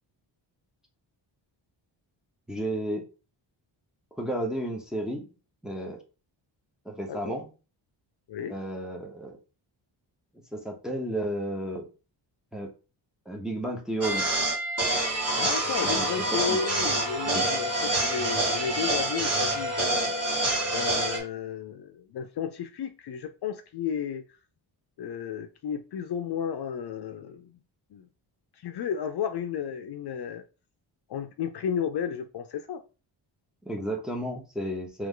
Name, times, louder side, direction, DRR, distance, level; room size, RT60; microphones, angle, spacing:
voice 1, 2.5-3.0 4.2-5.3 5.6-6.0 6.8-7.5 8.5-9.4 10.5-11.9 12.5-12.7 13.3-14.3 15.8-16.9 17.2-17.5 33.6-35.1, right 1 dB, ahead, 0.9 m, -33 dB
sound 1, 14.0-21.2, right 1 dB, 30° right, 1.5 m, -27 dB
voice 2, 15.3-20.1 20.7-24.2 25.0-27.6 27.9-28.1 28.6-30.4 31.1-32.8, left 7 dB, 55° left, 0.5 m, -33 dB
3.5 x 3.1 x 3.7 m
wide cardioid pair, 135°, 47 cm